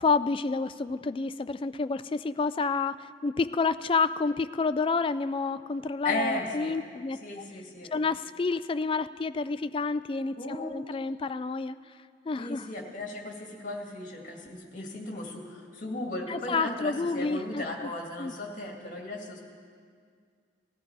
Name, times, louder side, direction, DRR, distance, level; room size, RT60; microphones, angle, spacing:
voice 1, 0.0-7.4 7.9-11.8 12.3-12.7 16.3-17.9 18.2-18.3, left 4 dB, 30° left, 13 dB, 0.3 m, -29 dB
voice 2, 6.0-6.7 7.2-7.9 10.4-10.7 12.4-19.4, left 1 dB, 45° left, 0 dB, 2.2 m, -36 dB
18.0 x 14.0 x 4.8 m, 2.1 s
head